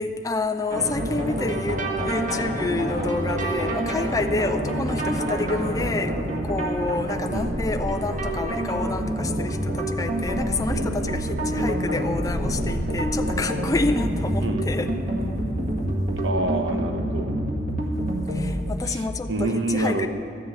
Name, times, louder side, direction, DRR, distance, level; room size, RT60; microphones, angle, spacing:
voice 1, 0.0-6.2 6.4-14.9 18.3-20.1, left 3 dB, 20° left, 6 dB, 0.4 m, -28 dB
sound 1, 0.7-18.8, right 1 dB, 45° right, 1.7 m, -27 dB
sound 2, 7.3-9.7 10.2-14.9, equal, 20° right, 2.5 m, -35 dB
voice 2, 10.7-11.7 14.4-14.7 16.2-17.4 18.8-20.1, right 2 dB, 80° right, 6 dB, 1.0 m, -28 dB
13.0 x 7.2 x 8.8 m, 2.6 s
head